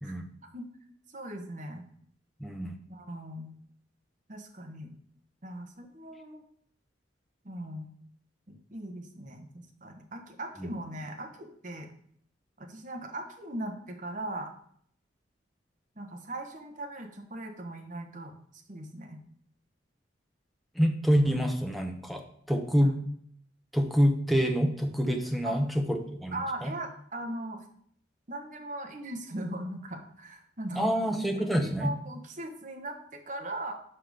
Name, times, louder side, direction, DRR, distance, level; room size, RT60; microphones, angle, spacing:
voice 1, 1.1-1.8 2.9-3.5 4.3-4.9 5.4-6.4 7.4-7.9 8.5-11.9 12.6-14.5 15.9-18.3 18.7-19.2 22.8-22.9 25.4-25.6 26.3-27.6 28.3-30.9 31.6-33.7, right 1 dB, 45° right, 3 dB, 1.2 m, -39 dB
voice 2, 2.4-2.7 10.6-10.7 20.8-22.2 22.5-23.0 23.7-26.4 26.6-26.7 30.8-31.9, equal, ahead, 3 dB, 0.8 m, -26 dB
5.8 x 5.1 x 6.6 m, 0.65 s
head